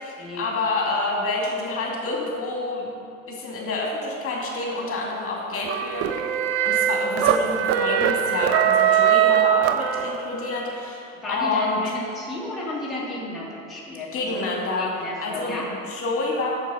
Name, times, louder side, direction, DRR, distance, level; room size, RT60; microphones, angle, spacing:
voice 1, 0.0-2.9 3.3-6.1 6.6-7.5 7.7-11.8 14.1-14.9 15.2-16.6, left 3 dB, 30° left, -2 dB, 2.3 m, -28 dB
sound 1, 5.7-10.5, right 9 dB, 35° right, 0.6 m, -21 dB
voice 2, 11.2-15.7, left 1 dB, ahead, -7 dB, 2.0 m, -33 dB
9.0 x 7.3 x 5.5 m, 2.6 s
figure-of-eight pair, 80°, 43 cm